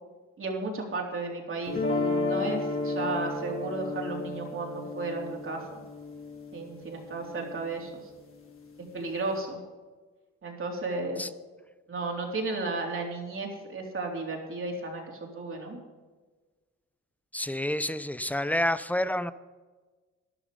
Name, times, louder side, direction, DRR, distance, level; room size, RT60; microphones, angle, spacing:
voice 1, 0.4-5.7 6.5-8.1 8.9-9.6 10.4-11.2 11.9-15.8, right 3 dB, 45° right, 0 dB, 3.8 m, -34 dB
sound 1, 1.7-7.8, left 3 dB, 45° left, 3.1 m, -33 dB
voice 2, 17.3-19.3, left 1 dB, 5° left, 15 dB, 0.7 m, -28 dB
13.0 x 11.0 x 5.4 m, 1.3 s
cardioid pair, 90°, 30 cm